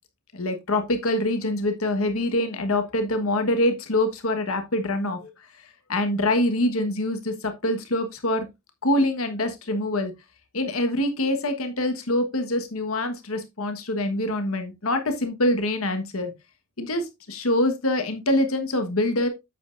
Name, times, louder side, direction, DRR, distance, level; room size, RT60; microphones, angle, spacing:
voice 1, 0.3-5.3 5.9-8.4 8.8-10.1 10.5-16.3 16.8-19.3, left 1 dB, 80° left, 1.4 m, -25 dB
8.3 x 7.8 x 2.5 m
head